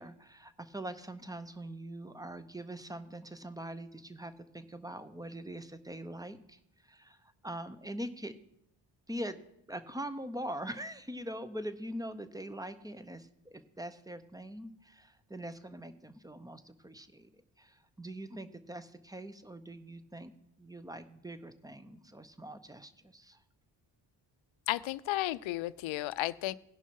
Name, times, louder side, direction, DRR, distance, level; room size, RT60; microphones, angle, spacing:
voice 1, 0.0-8.4 9.1-9.4 9.7-17.3 17.6-20.3 20.6-23.4, right 1 dB, 10° right, 13 dB, 0.7 m, -43 dB
voice 2, 24.7-26.5, left 17 dB, 80° left, 19 dB, 0.5 m, -33 dB
16.5 x 5.6 x 4.6 m, 0.77 s
supercardioid pair, 55°, 47 cm